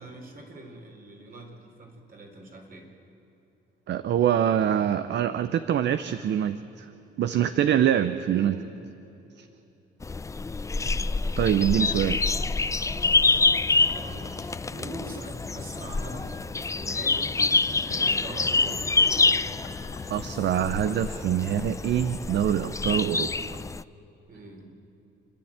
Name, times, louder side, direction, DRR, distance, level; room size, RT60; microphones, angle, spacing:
voice 1, 0.0-2.9 8.2-8.6 13.2-13.4 13.9-17.4 17.8-19.0 24.3-24.7, right 2 dB, 45° right, 2 dB, 4.0 m, -43 dB
voice 2, 3.9-6.9 7.2-8.6 9.4-9.5 11.4-12.2 20.1-23.3, right 10 dB, 65° right, 11 dB, 0.7 m, -24 dB
sound 1, 10.0-23.8, left 3 dB, 15° left, 0.4 m, -26 dB
sound 2, 12.6-22.8, left 5 dB, 85° left, 3.3 m, -47 dB
29.0 x 10.5 x 8.8 m, 3.0 s
cardioid pair, 90°, 20 cm